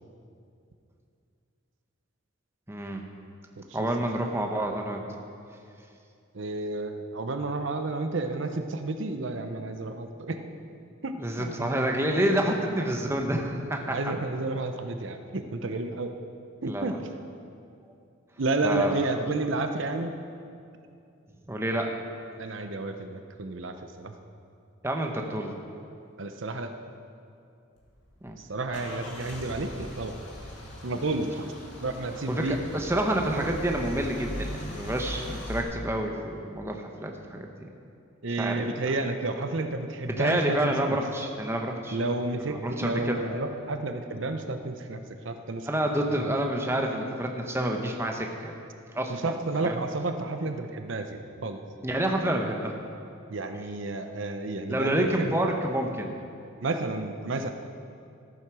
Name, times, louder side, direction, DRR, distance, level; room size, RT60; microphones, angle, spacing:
voice 1, 2.7-3.0 3.7-5.0 11.2-14.0 16.7-16.9 18.6-18.9 21.5-21.9 24.8-25.5 28.2-28.4 32.3-37.5 38.4-38.6 40.1-42.0 42.5-43.4 45.7-48.5 48.9-49.3 49.6-49.8 51.8-52.8 54.7-56.1, right 1 dB, 10° right, 2 dB, 0.9 m, -28 dB
voice 2, 3.6-3.9 6.3-10.4 11.0-11.7 13.9-16.1 16.6-17.0 18.4-20.1 22.4-24.1 26.2-26.7 28.4-30.2 30.8-32.6 38.2-41.0 41.9-45.7 46.1-46.3 49.1-51.6 53.3-55.4 56.6-57.5, right 2 dB, 65° right, 7 dB, 0.7 m, -31 dB
Car / Engine starting / Idling, 27.8-35.6, equal, 60° left, 2.5 m, -39 dB
14.0 x 9.3 x 6.2 m, 2.5 s
head